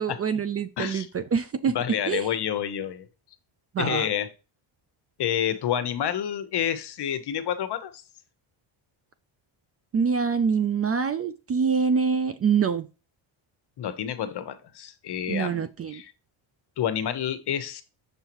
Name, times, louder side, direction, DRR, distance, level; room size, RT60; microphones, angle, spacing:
voice 1, 0.0-1.8 2.1-2.3 3.7-4.1 9.9-12.8 15.3-16.0, right 6 dB, 30° right, 0.4 m, -25 dB
voice 2, 0.8-1.1 1.7-3.1 3.8-4.3 5.2-8.0 13.8-15.6 15.9-16.1 16.8-17.8, left 10 dB, 55° left, 0.9 m, -29 dB
6.8 x 5.5 x 3.0 m
cardioid pair, 125°, 48 cm